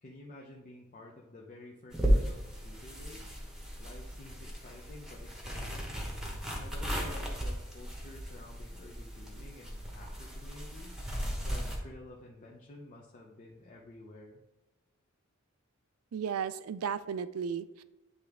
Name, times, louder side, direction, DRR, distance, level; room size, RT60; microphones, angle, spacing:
voice 1, 0.0-3.3 3.8-6.2 6.5-11.0 11.4-14.4, left 2 dB, 35° left, -2 dB, 0.6 m, -51 dB
sound 1, 1.9-11.8, equal, 5° right, 1.1 m, -35 dB
voice 2, 16.1-17.8, right 7 dB, 85° right, 14 dB, 0.4 m, -34 dB
9.6 x 3.4 x 3.5 m, 1.0 s
head